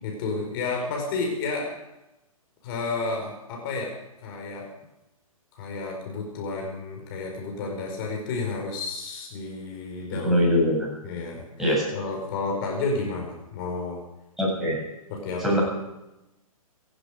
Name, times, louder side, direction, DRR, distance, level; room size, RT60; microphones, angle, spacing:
voice 1, 0.0-1.7 2.6-4.0 4.2-4.7 5.5-10.4 11.0-14.0 15.1-15.6, left 3 dB, 40° left, 0 dB, 5.0 m, -31 dB
voice 2, 10.2-10.9 11.6-11.9 14.4-14.8 15.4-15.6, equal, ahead, -5 dB, 7.6 m, -22 dB
17.0 x 15.5 x 5.1 m, 0.95 s
figure-of-eight pair, 125°, 18 cm